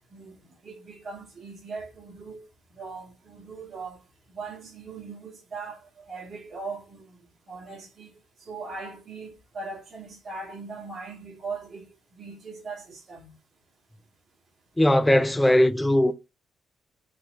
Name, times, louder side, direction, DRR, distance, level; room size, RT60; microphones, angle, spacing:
voice 1, 0.1-2.5 2.7-4.0 4.3-7.2 7.5-8.1 8.4-11.9 12.1-13.3, right 4 dB, 55° right, 1.9 m, -40 dB
voice 2, 14.8-16.1, left 1 dB, 10° left, 0.4 m, -19 dB
4.5 x 3.7 x 2.3 m
cardioid pair, 90°, 0 cm